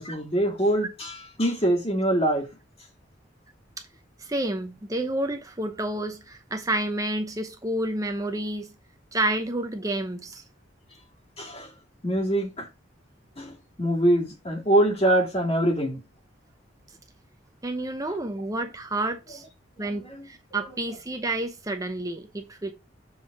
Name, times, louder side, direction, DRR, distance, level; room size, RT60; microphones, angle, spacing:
voice 1, 0.0-2.5 11.4-11.7 12.0-12.7 13.4-16.0 19.8-20.2, right 1 dB, 30° left, 2.0 m, -24 dB
voice 2, 4.2-8.7 9.1-10.4 17.6-19.4 19.8-22.7, right 1 dB, 20° right, 0.8 m, -29 dB
7.1 x 3.8 x 4.8 m
head